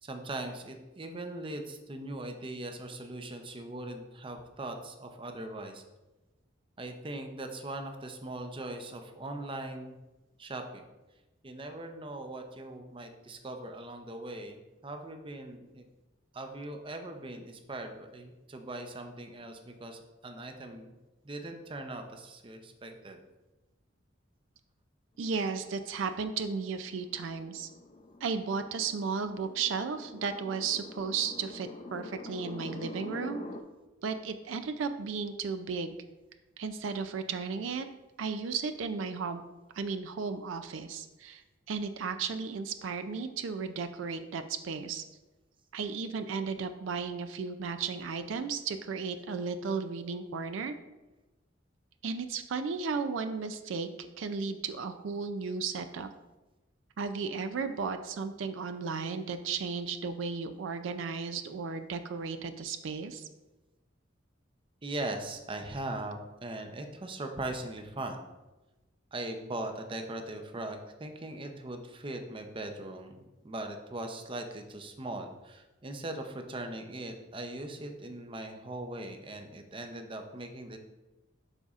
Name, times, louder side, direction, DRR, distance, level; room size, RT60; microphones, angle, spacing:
voice 1, 0.0-5.8 6.8-10.0 10.4-10.9 11.4-15.8 16.3-20.9 21.2-23.2 64.8-68.2 69.1-80.8, right 2 dB, 25° right, 5 dB, 0.6 m, -40 dB
voice 2, 25.2-27.7 28.2-33.4 34.0-35.9 36.6-37.9 38.2-39.4 39.7-45.0 45.7-50.7 52.0-56.1 57.0-63.3, right 5 dB, 80° right, 9 dB, 0.4 m, -34 dB
sound 1, 25.7-33.6, left 2 dB, 35° left, 0.5 m, -46 dB
12.0 x 4.1 x 2.4 m, 1.1 s
head